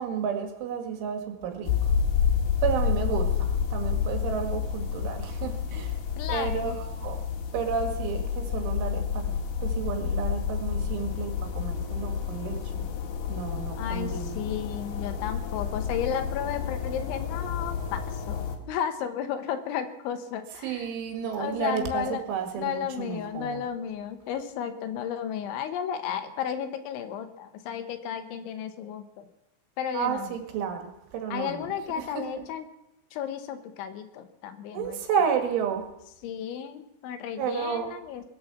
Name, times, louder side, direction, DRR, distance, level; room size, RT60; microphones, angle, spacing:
voice 1, 0.0-1.9 2.6-6.0 6.3-7.2 7.5-12.9 13.3-14.4 20.6-23.6 29.9-32.2 34.7-35.9 37.4-37.9, right 7 dB, 75° right, 4 dB, 4.3 m, -31 dB
sound 1, 1.6-18.6, left 7 dB, 60° left, 3.2 m, -29 dB
voice 2, 6.2-6.8 13.8-20.9 21.4-22.2 22.6-29.3 29.8-30.3 31.3-32.7 33.1-35.0 36.2-38.2, left 8 dB, 75° left, 8 dB, 3.3 m, -33 dB
20.5 x 9.5 x 7.2 m, 0.87 s
omnidirectional pair, 5.7 m